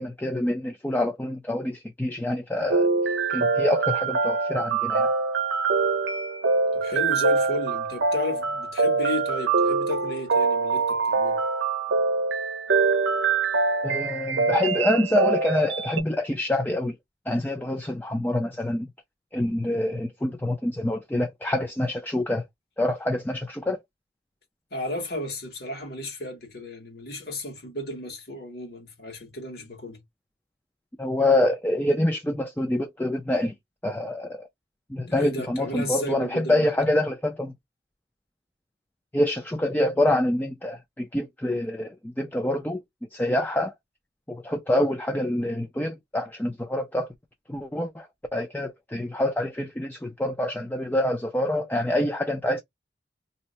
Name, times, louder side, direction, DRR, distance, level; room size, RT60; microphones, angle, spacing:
voice 1, 0.0-2.9 3.3-5.1 13.8-17.0 17.3-18.9 19.3-22.5 22.8-23.8 31.0-33.5 33.8-34.5 34.9-37.5 39.1-42.8 43.1-43.7 44.3-47.1 47.5-52.6, left 1 dB, 10° left, 0.4 m, -26 dB
sound 1, 2.7-16.0, right 4 dB, 85° right, 0.6 m, -24 dB
voice 2, 6.7-11.4 24.7-30.0 35.0-36.7, left 2 dB, 60° left, 1.4 m, -33 dB
2.7 x 2.1 x 4.0 m
head